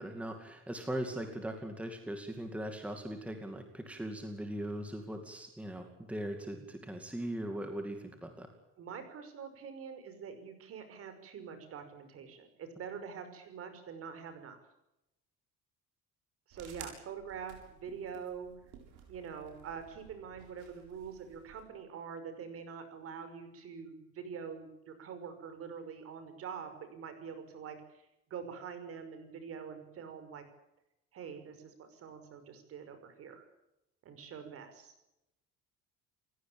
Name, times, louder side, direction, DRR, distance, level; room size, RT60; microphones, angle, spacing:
voice 1, 0.0-8.5, right 1 dB, 5° right, 5 dB, 2.4 m, -40 dB
voice 2, 8.8-14.6 16.5-18.5 19.1-30.4 31.1-33.4 34.0-34.9, right 6 dB, 45° right, 9 dB, 5.8 m, -45 dB
sound 1, 16.5-21.6, right 7 dB, 85° right, 7.6 m, -54 dB
29.5 x 16.5 x 8.8 m, 0.88 s
cardioid pair, 175°, 31 cm